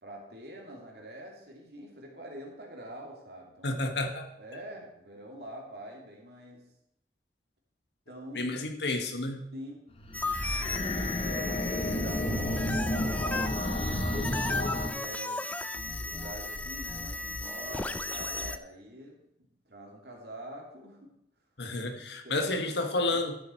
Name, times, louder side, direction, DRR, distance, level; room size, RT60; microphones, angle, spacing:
voice 1, 0.0-4.0 4.4-6.7 8.1-8.6 9.5-9.8 11.0-14.0 14.6-21.1 22.2-22.8 23.1-23.2, right 1 dB, 65° right, 0 dB, 2.6 m, -45 dB
voice 2, 3.6-4.3 8.3-9.5 21.6-23.4, left 2 dB, 80° left, 5 dB, 1.3 m, -30 dB
sound 1, 10.0-14.9, left 1 dB, 35° left, 1.1 m, -31 dB
sound 2, 10.1-18.6, left 2 dB, 10° left, 0.4 m, -35 dB
12.0 x 7.4 x 4.4 m, 0.80 s
head